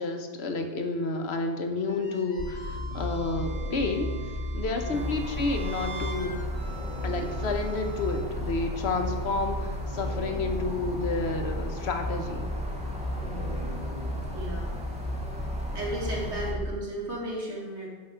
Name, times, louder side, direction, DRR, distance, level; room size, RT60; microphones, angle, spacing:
voice 1, 0.0-4.1 4.5-6.4 7.0-12.4, left 3 dB, 65° left, 5 dB, 1.1 m, -30 dB
sound 1, 1.9-8.2, right 4 dB, 55° right, 3.1 m, -44 dB
sound 2, 2.4-16.6, left 1 dB, 30° left, 1.2 m, -34 dB
sound 3, 4.9-16.5, equal, 5° right, 0.8 m, -41 dB
voice 2, 13.1-13.7 14.3-14.7 15.7-17.9, right 1 dB, 75° right, -3 dB, 2.3 m, -35 dB
11.5 x 4.2 x 4.9 m, 1.4 s
omnidirectional pair, 1.2 m